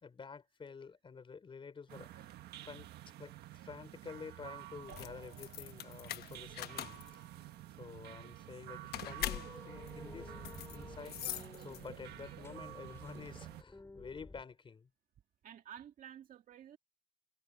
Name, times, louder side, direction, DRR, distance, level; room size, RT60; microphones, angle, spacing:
voice 1, 0.0-2.4 2.6-2.9 3.2-7.0 7.8-10.3 10.7-11.2 11.6-14.9, left 5 dB, 30° left, 3.7 m, -50 dB
sound 1, 1.9-13.6, right 15 dB, 75° right, 1.5 m, -50 dB
sound 2, 4.8-12.1, left 13 dB, 70° left, 1.2 m, -44 dB
sound 3, 9.3-14.4, left 2 dB, 15° left, 3.9 m, -53 dB
voice 2, 15.4-16.8, right 10 dB, 55° right, 2.0 m, -51 dB
cardioid pair, 110°, 17 cm